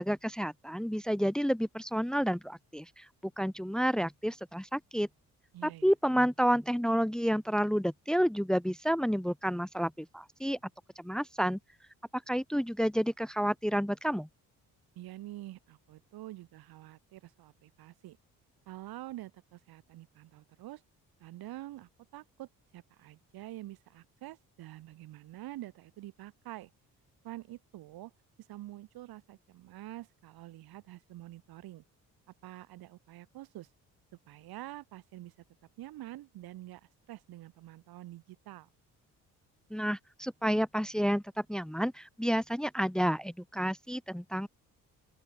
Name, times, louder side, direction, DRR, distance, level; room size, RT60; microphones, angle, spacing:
voice 1, 0.0-5.1 5.6-10.6 11.0-11.6 12.1-14.3 39.7-44.5, equal, ahead, 1.3 m, -30 dB
voice 2, 5.5-5.9 15.0-18.2 18.7-20.8 21.2-26.7 27.2-28.1 28.4-31.8 32.4-33.7 34.3-35.3 35.8-38.7, right 15 dB, 85° right, 7.4 m, -47 dB
open air
supercardioid pair, 70°, 36 cm